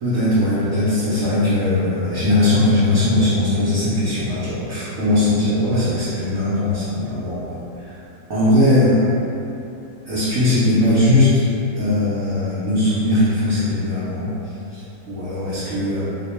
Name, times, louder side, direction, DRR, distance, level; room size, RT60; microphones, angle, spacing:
voice 1, 0.0-7.9 8.3-9.1 10.1-11.4 11.8-14.3 14.7-16.1, left 1 dB, 65° right, -10 dB, 0.9 m, -19 dB
2.9 x 2.2 x 4.2 m, 2.9 s
omnidirectional pair, 1.9 m